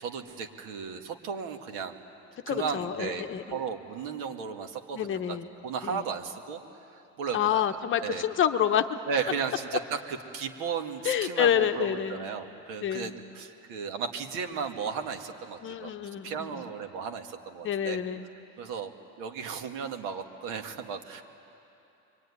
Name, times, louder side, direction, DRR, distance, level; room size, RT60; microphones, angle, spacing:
voice 1, 0.0-2.0 2.5-5.4 5.6-6.6 6.9-7.6 8.0-8.2 9.1-15.9 16.2-18.0 18.6-18.9 19.2-21.2, right 6 dB, 75° right, 4 dB, 2.1 m, -35 dB
voice 2, 2.5-3.6 4.9-5.5 5.8-6.0 7.3-8.8 11.0-12.2 12.8-13.1 15.6-16.6 17.6-18.3, left 9 dB, 30° left, 7 dB, 0.8 m, -28 dB
25.0 x 24.0 x 9.8 m, 2.9 s
cardioid pair, 155°, 37 cm